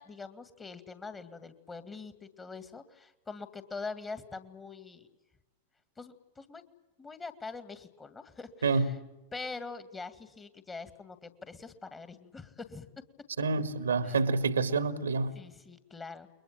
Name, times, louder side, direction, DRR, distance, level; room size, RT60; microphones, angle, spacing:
voice 1, 0.0-5.1 6.0-6.6 7.0-9.0 9.3-13.0 14.0-14.2 15.3-16.3, left 4 dB, 15° left, 2.1 m, -44 dB
voice 2, 8.6-8.9 13.4-15.4, right 4 dB, 70° right, 1.6 m, -28 dB
29.5 x 23.0 x 7.6 m
figure-of-eight pair, 90°, 0 cm